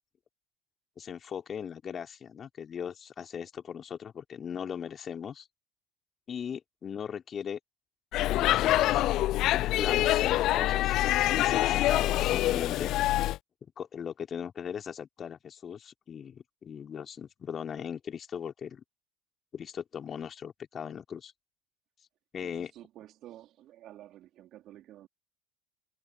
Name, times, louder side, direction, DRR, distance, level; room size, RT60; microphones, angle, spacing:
voice 1, 1.0-5.5 6.3-7.6 8.3-9.0 9.5-10.9 11.4-12.9 13.8-18.8 19.5-21.3 22.3-22.7, left 7 dB, 35° left, 3.4 m, -38 dB
Speech / Shout / Subway metro underground, 8.1-13.4, left 15 dB, 50° left, 0.7 m, -25 dB
voice 2, 22.4-25.1, right 13 dB, 50° right, 4.2 m, -51 dB
figure-of-eight pair, 70°, 0 cm